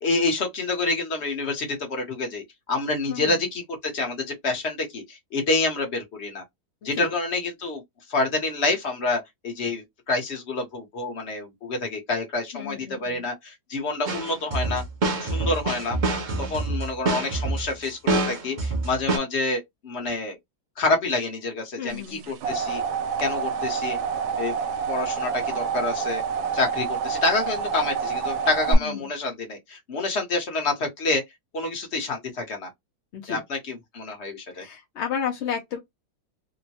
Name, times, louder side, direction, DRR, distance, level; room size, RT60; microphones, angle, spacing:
voice 1, 0.0-2.4 2.7-6.4 6.8-7.8 8.1-14.8 15.2-16.0 16.4-20.4 20.8-22.8 23.2-24.0 24.4-24.6 24.9-26.2 26.5-31.2 31.5-32.7 33.3-34.6, left 3 dB, 45° left, 1.1 m, -27 dB
voice 2, 3.1-3.4 7.0-7.1 12.5-13.2 21.8-22.3 28.7-29.0 33.1-33.4 34.5-35.8, left 8 dB, 65° left, 0.7 m, -32 dB
sound 1, 14.1-19.2, right 2 dB, 70° right, 0.4 m, -26 dB
sound 2, 22.0-28.7, right 6 dB, 85° right, 1.2 m, -28 dB
3.1 x 2.1 x 2.8 m
omnidirectional pair, 1.8 m